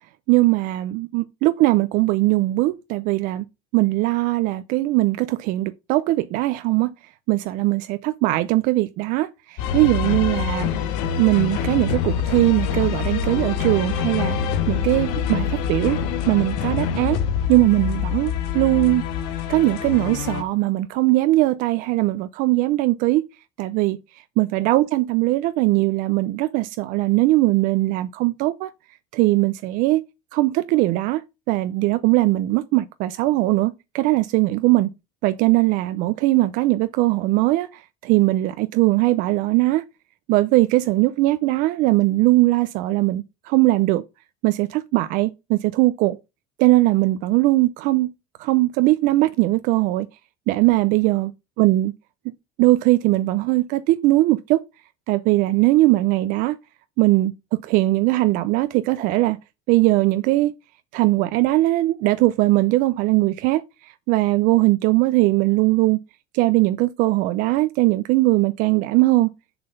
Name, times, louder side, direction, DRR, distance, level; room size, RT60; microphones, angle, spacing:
voice 1, 0.3-3.4 3.7-6.9 7.3-10.7 11.2-14.4 14.7-16.0 16.3-17.2 17.5-19.0 19.5-23.2 23.6-24.0 24.4-28.7 29.1-30.0 30.3-31.2 31.5-34.9 35.2-39.8 40.3-44.0 44.4-46.2 46.6-48.1 48.4-50.1 50.5-51.3 51.6-51.9 52.6-54.6 55.1-56.6 57.0-59.4 59.7-60.5 60.9-66.0 66.3-69.3, right 19 dB, 55° right, 0.5 m, -20 dB
sound 1, 9.6-20.4, left 7 dB, 80° left, 1.5 m, -25 dB
6.8 x 5.9 x 5.3 m
cardioid pair, 170°, 17 cm